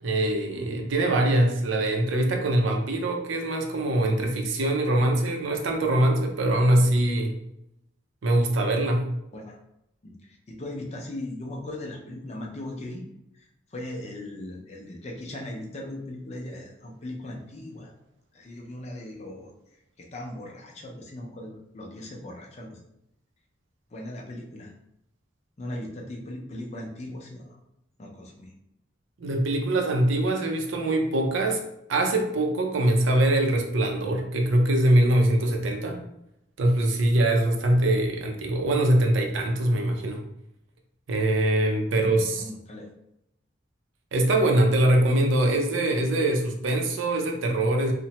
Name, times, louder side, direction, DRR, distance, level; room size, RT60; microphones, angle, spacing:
voice 1, 0.0-7.4 8.2-9.1 29.2-31.6 31.9-36.0 36.6-40.2 41.1-42.4 44.1-47.9, right 1 dB, 85° right, 3 dB, 0.5 m, -23 dB
voice 2, 10.0-13.0 13.3-17.9 18.3-19.5 20.0-22.8 23.9-24.7 25.6-27.6 28.0-28.5 41.9-42.9, left 1 dB, 35° left, 0 dB, 0.4 m, -38 dB
2.9 x 2.1 x 2.8 m, 0.81 s
head